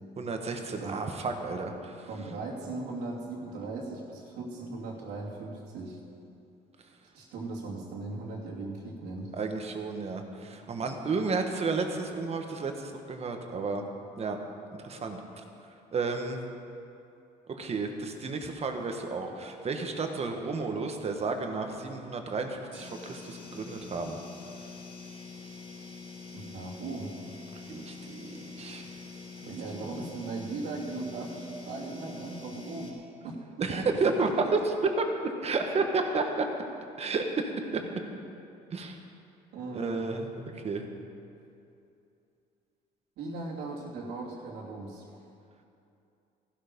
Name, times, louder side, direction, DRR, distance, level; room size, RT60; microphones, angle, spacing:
voice 1, 0.2-2.1 9.3-13.9 14.2-14.4 14.8-15.4 15.9-16.4 17.5-24.2 27.6-28.9 29.4-29.5 33.6-36.5 37.0-37.8 38.7-39.0 39.7-40.3 40.5-40.9, right 4 dB, 40° right, 4 dB, 1.5 m, -32 dB
voice 2, 2.1-6.0 7.1-9.3 26.3-27.1 29.4-33.0 33.2-33.4 33.7-34.1 37.8-37.9 39.5-40.3 43.2-45.1, right 3 dB, 85° right, -4 dB, 2.8 m, -38 dB
sound 1, 22.7-32.9, left 4 dB, 35° left, 3.6 m, -45 dB
14.5 x 12.5 x 5.4 m, 2.7 s
cardioid pair, 110°, 17 cm